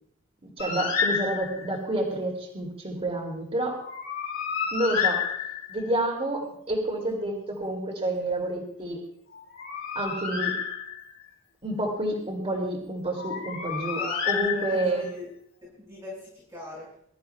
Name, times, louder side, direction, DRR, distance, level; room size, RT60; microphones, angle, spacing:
Bird, 0.6-1.8 3.8-5.9 9.3-11.2 13.2-15.1, left 6 dB, 65° left, 4.1 m, -30 dB
voice 1, 0.6-3.8 4.7-5.3 5.7-9.0 9.9-10.6 11.6-14.0 14.2-15.1, right 1 dB, 30° right, -2 dB, 2.6 m, -29 dB
voice 2, 14.5-15.3 15.6-16.9, left 1 dB, 15° right, -7 dB, 5.2 m, -40 dB
24.5 x 13.0 x 2.3 m, 0.70 s
head